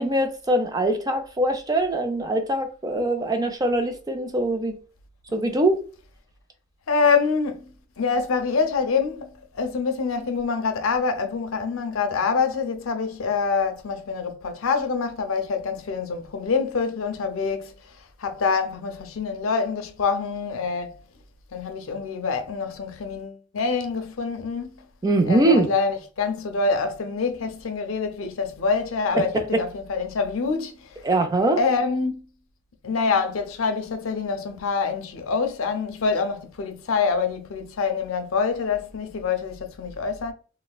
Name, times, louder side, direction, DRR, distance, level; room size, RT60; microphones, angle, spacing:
voice 1, 0.0-4.8 5.3-5.8 25.0-25.7 29.3-29.6 31.0-31.6, right 1 dB, 20° right, 0.4 m, -22 dB
voice 2, 6.9-17.7 18.2-21.0 21.5-24.8 25.3-31.0 31.6-32.3 32.8-40.3, left 5 dB, 85° left, 0.6 m, -26 dB
3.2 x 2.1 x 2.3 m
head